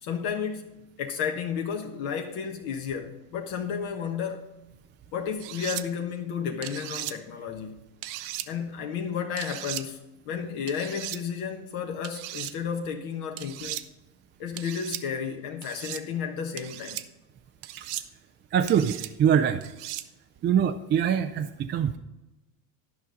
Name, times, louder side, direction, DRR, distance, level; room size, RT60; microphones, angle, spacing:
voice 1, 0.0-4.5 5.1-7.8 8.5-13.8 14.4-17.0, left 7 dB, 50° left, 1.4 m, -32 dB
sound 1, 5.4-5.8 6.6-7.1 8.0-8.5 9.4-9.8 10.7-11.2 12.0-12.5 13.4-13.8 14.6-15.0 15.6-16.0 16.6-17.0 17.6-18.1 18.7-19.1 19.6-20.1, right 15 dB, 65° right, 0.8 m, -36 dB
voice 2, 18.5-19.6 20.4-22.0, right 8 dB, 25° right, 0.4 m, -23 dB
11.5 x 5.6 x 5.1 m
hypercardioid pair, 100°, 48 cm